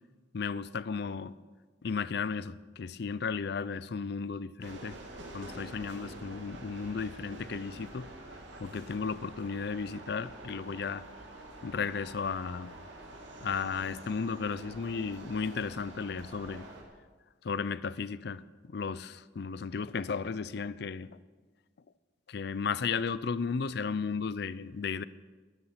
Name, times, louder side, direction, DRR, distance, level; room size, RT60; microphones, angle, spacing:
voice 1, 0.3-1.4 1.8-8.1 8.6-11.0 11.6-12.7 13.4-16.7 17.4-21.1 22.3-25.0, left 5 dB, 60° left, 17 dB, 0.5 m, -34 dB
sound 1, 4.6-16.8, right 1 dB, 80° right, 2.4 m, -47 dB
12.5 x 12.5 x 5.8 m, 1.4 s
head